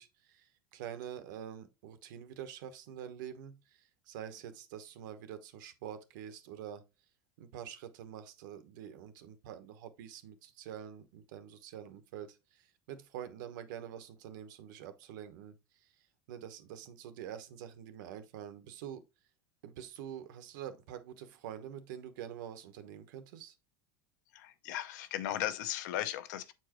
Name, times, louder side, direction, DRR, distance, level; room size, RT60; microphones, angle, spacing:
voice 1, 0.0-6.9 7.4-15.9 16.3-19.1 19.6-23.5, right 9 dB, 70° right, 1.1 m, -46 dB
voice 2, 24.3-26.5, left 13 dB, 65° left, 0.7 m, -36 dB
8.0 x 4.5 x 3.0 m
supercardioid pair, 180°, 11 cm